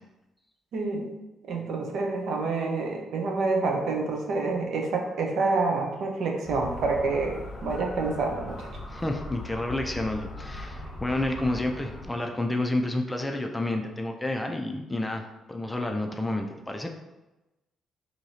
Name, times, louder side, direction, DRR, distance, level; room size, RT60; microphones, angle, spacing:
voice 1, 0.7-1.1 1.5-8.7, right 3 dB, 70° right, 1 dB, 0.7 m, -28 dB
Motor vehicle (road) / Siren, 6.5-12.1, left 1 dB, 35° left, 1.0 m, -39 dB
voice 2, 8.9-16.9, left 1 dB, 10° left, 3 dB, 0.4 m, -30 dB
4.6 x 2.8 x 2.7 m, 1.0 s
cardioid pair, 90°, 0 cm